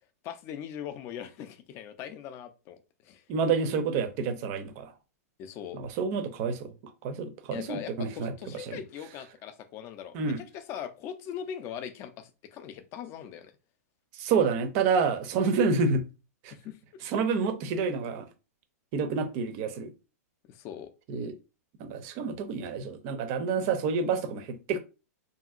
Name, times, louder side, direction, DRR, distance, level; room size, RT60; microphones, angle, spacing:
voice 1, 0.2-3.2 5.4-5.8 7.5-13.5 16.5-16.8 20.5-20.9, left 9 dB, 30° left, 0.4 m, -41 dB
voice 2, 3.3-4.9 5.7-6.7 7.0-8.8 10.1-10.4 14.1-16.0 16.4-16.5 17.0-18.3 18.9-19.9 21.1-21.3 21.8-24.8, right 5 dB, 40° right, 0.5 m, -28 dB
2.8 x 2.7 x 2.4 m
hypercardioid pair, 140°, 9 cm